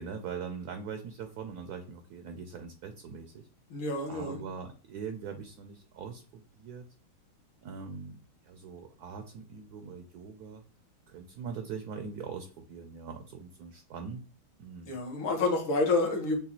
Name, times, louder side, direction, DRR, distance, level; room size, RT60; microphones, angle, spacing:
voice 1, 0.0-3.5 4.1-6.9 7.6-10.6 11.1-14.2 14.6-15.0, right 6 dB, 75° right, 6 dB, 0.9 m, -42 dB
voice 2, 3.7-4.4 14.9-16.4, left 3 dB, 75° left, 0 dB, 2.0 m, -28 dB
6.8 x 2.4 x 2.9 m, 0.41 s
omnidirectional pair, 2.2 m